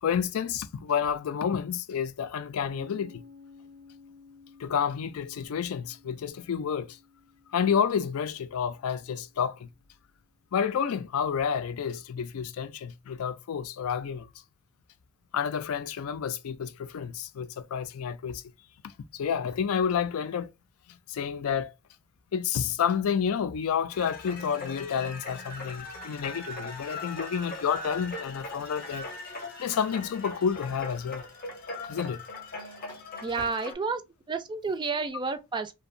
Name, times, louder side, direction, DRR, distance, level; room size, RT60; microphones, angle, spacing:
voice 1, 0.0-3.2 4.6-7.0 7.5-9.7 10.5-14.3 15.3-18.4 19.1-20.5 20.9-21.7 22.3-29.1 29.6-31.2 31.9-32.2, left 7 dB, 80° left, 0.4 m, -30 dB
Piano, 2.7-9.9, left 4 dB, 80° right, 0.9 m, -55 dB
sound 1, 23.9-33.7, left 2 dB, 45° left, 0.6 m, -40 dB
voice 2, 33.2-34.0 34.3-35.7, right 4 dB, 20° right, 0.3 m, -31 dB
2.7 x 2.2 x 2.4 m
head